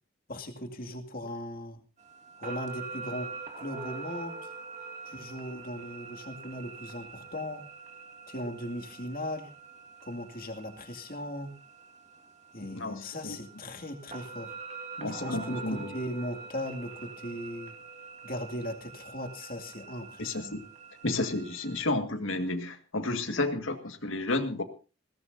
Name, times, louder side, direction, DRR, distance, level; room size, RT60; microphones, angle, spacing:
voice 1, 0.3-1.8 2.4-4.5 5.0-7.7 8.3-9.5 10.0-11.5 12.5-14.6 15.2-17.8 18.2-20.6, equal, 45° left, 5 dB, 2.3 m, -38 dB
sound 1, 2.0-21.9, right 4 dB, 35° right, 2.4 m, -45 dB
voice 2, 12.7-13.4 15.0-15.9 20.2-20.6 21.0-24.6, left 2 dB, 80° left, 7 dB, 1.9 m, -31 dB
21.0 x 17.5 x 2.7 m, 0.34 s
head